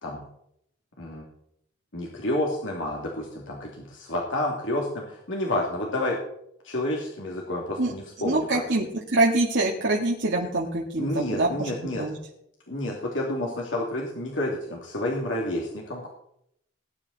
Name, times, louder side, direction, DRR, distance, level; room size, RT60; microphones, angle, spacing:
voice 1, 1.9-6.2 6.6-8.6 11.0-12.0 12.7-16.1, left 1 dB, 85° left, -2 dB, 2.6 m, -29 dB
voice 2, 8.2-11.7 12.0-12.1, right 2 dB, 70° right, -2 dB, 2.0 m, -25 dB
19.0 x 11.0 x 4.1 m, 0.75 s
head